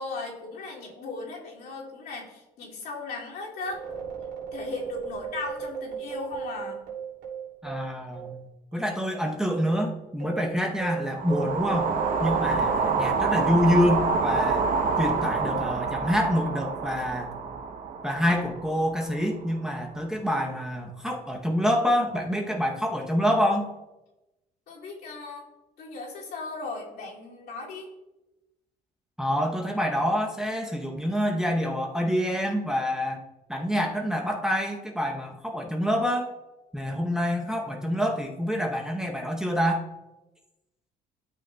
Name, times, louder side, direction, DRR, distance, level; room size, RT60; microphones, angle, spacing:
voice 1, 0.0-3.8 4.5-6.8 24.7-25.5 25.8-27.9, left 3 dB, 65° left, -4 dB, 2.4 m, -37 dB
sound 1, 3.6-8.4 8.7-8.8 9.4-14.2, right 8 dB, 85° right, 2.6 m, -37 dB
voice 2, 7.6-8.4 8.7-11.9 12.2-14.7 15.0-17.3 18.0-23.7 29.2-33.2 33.5-36.3 36.7-39.8, equal, 5° right, 1 dB, 0.8 m, -26 dB
sound 2, 11.1-19.3, right 4 dB, 55° right, 0.8 m, -27 dB
12.0 x 6.1 x 2.2 m, 1.0 s
cardioid pair, 110°, 17 cm